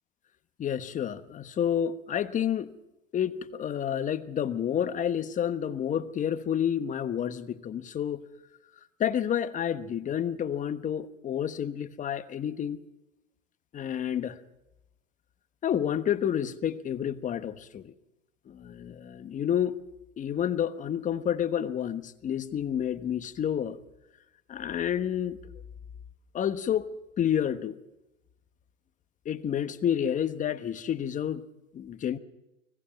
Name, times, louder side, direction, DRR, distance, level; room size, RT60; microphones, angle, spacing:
voice 1, 0.6-2.7 3.1-8.2 9.0-12.8 13.7-14.4 15.6-17.9 18.5-19.7 20.2-23.8 24.5-25.4 26.3-26.9 27.2-27.8 29.2-31.4 31.7-32.2, left 9 dB, 20° left, 11 dB, 1.2 m, -29 dB
30.0 x 20.0 x 5.8 m, 0.97 s
hypercardioid pair, 110°, 38 cm